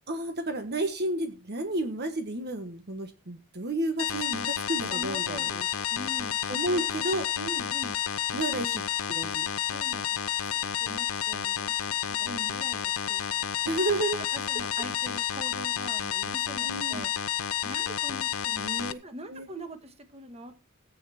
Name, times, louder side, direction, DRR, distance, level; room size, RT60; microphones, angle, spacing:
voice 1, 0.1-5.5 6.5-7.2 8.3-8.8 9.1-9.5 12.2-12.5 13.6-14.2 16.6-17.1 18.6-19.0 19.3-19.5, right 1 dB, 50° right, 7 dB, 1.4 m, -31 dB
sound 1, 4.0-18.9, left 10 dB, 65° left, 0.8 m, -30 dB
voice 2, 4.9-6.4 6.7-6.8 7.4-7.9 9.7-10.2 10.6-13.5 14.3-17.1 17.6-18.7 19.0-20.7, right 1 dB, 30° right, 8 dB, 1.6 m, -43 dB
16.5 x 8.7 x 4.3 m, 0.29 s
head